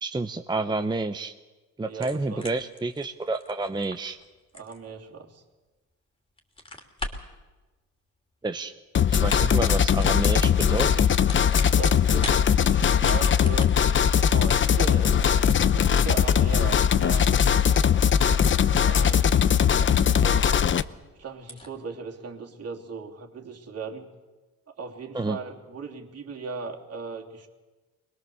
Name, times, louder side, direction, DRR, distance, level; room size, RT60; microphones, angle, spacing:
voice 1, 0.0-1.3 1.8-4.2 8.4-8.7 9.1-11.2 25.1-25.4, right 2 dB, 15° right, 7 dB, 0.8 m, -29 dB
voice 2, 1.8-2.5 4.5-5.4 11.6-13.7 14.3-17.3 18.6-19.5 20.1-20.6 21.2-24.1 24.8-27.5, right 5 dB, 45° right, 1 dB, 3.0 m, -38 dB
sound 1, 1.9-5.9 6.3-7.4 8.4-8.9 9.1-9.6 9.9-10.2 11.0-12.4 12.7-19.8 20.1-20.2 20.7-20.8 20.9-21.0 21.4-21.7, left 2 dB, 15° left, 2.9 m, -41 dB
sound 2, 8.9-20.8, left 8 dB, 35° left, 0.7 m, -20 dB
23.0 x 21.0 x 7.0 m, 1.2 s
cardioid pair, 100°, 33 cm